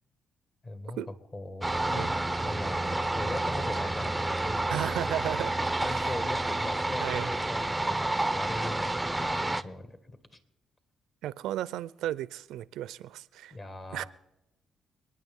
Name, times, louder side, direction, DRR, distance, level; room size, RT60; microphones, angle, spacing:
voice 1, 0.6-1.0 1.3-4.7 5.8-10.2 13.5-14.1, left 2 dB, 35° left, 1.8 m, -40 dB
sound 1, 1.6-9.6, right 2 dB, 10° right, 0.5 m, -30 dB
voice 2, 4.7-6.1 7.0-7.3 11.2-13.5 13.9-14.0, right 13 dB, 85° right, 0.4 m, -34 dB
29.0 x 9.8 x 3.7 m
cardioid pair, 90°, 0 cm